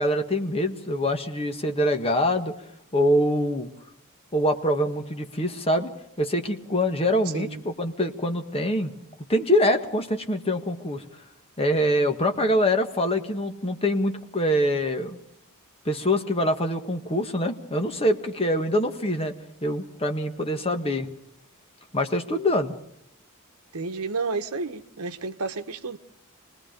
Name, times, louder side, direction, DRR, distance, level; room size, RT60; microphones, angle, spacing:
voice 1, 0.0-2.5 2.9-3.7 4.3-5.9 6.2-8.9 9.3-11.0 11.6-15.2 15.8-19.3 19.6-21.1 21.9-22.7, left 1 dB, 25° left, 1.6 m, -24 dB
voice 2, 23.7-26.0, right 4 dB, 75° right, 1.1 m, -31 dB
27.0 x 19.5 x 5.2 m
head